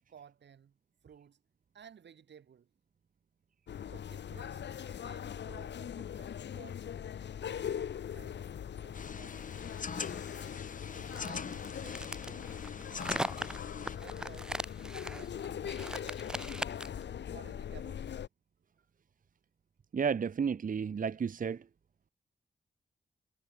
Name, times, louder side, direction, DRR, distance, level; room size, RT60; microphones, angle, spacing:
voice 1, 0.1-0.8 1.0-1.4 1.7-2.7 3.9-6.9 7.4-9.5 10.9-13.5 13.8-14.5 14.9-16.2 17.3-18.2, right 8 dB, 85° right, 3.1 m, -56 dB
sound 1, 3.7-18.3, left 9 dB, 85° left, 1.1 m, -41 dB
sound 2, 8.9-14.0, left 5 dB, 50° left, 1.3 m, -43 dB
sound 3, 11.1-17.0, right 1 dB, 5° right, 0.4 m, -39 dB
voice 2, 19.9-21.6, right 6 dB, 50° right, 0.7 m, -32 dB
cardioid pair, 75°, 18 cm